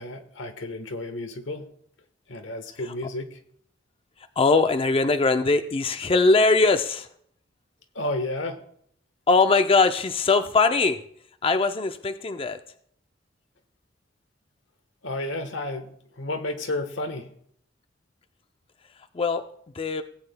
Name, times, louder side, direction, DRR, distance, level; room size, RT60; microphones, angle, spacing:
voice 1, 0.0-1.7 2.3-3.4 7.9-8.6 15.0-15.9 16.2-17.3, left 2 dB, 90° left, 7 dB, 1.2 m, -31 dB
voice 2, 4.2-7.1 9.3-11.0 11.4-12.6 19.1-19.4 19.7-20.0, left 3 dB, 30° left, 8 dB, 0.4 m, -21 dB
17.5 x 8.8 x 2.2 m, 0.66 s
head